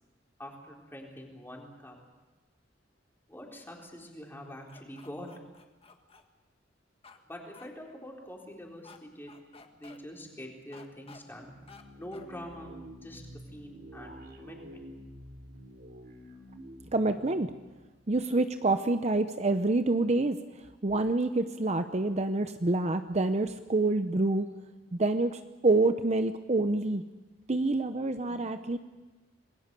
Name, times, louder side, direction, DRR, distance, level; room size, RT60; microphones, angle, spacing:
voice 1, 0.4-2.0 3.3-5.3 7.3-11.5 12.0-12.7 13.0-13.2 13.5-14.8 28.2-28.4, equal, 10° left, 0 dB, 4.0 m, -45 dB
sound 1, 4.7-6.2 7.0-7.2 7.5-7.7 8.8-9.0 9.3-10.0 10.7-11.2 11.7-11.8 12.1-12.3, left 4 dB, 30° left, 1.7 m, -53 dB
sound 2, 11.4-18.6, equal, 55° right, 3.4 m, -49 dB
voice 2, 16.9-17.5 18.1-24.5 24.9-27.0 27.5-28.8, right 2 dB, 40° right, 9 dB, 0.8 m, -27 dB
27.5 x 20.5 x 6.9 m, 1.2 s
head